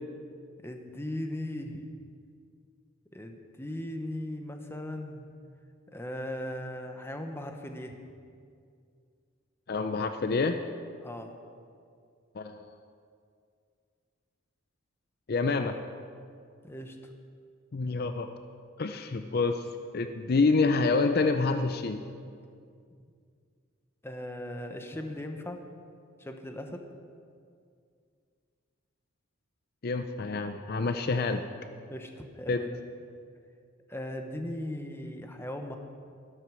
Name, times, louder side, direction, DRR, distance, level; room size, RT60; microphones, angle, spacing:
voice 1, 0.6-1.9 3.1-5.3 5.9-8.0 11.0-11.3 16.6-17.0 24.0-25.6 26.2-26.8 31.9-32.8 33.9-35.8, left 1 dB, 10° left, 5 dB, 0.9 m, -38 dB
voice 2, 9.7-10.5 12.3-12.7 15.3-15.7 17.7-18.3 18.8-19.7 19.9-22.0 29.8-31.4 32.5-32.6, left 3 dB, 50° left, 8 dB, 0.5 m, -27 dB
12.0 x 11.5 x 6.2 m, 2.3 s
head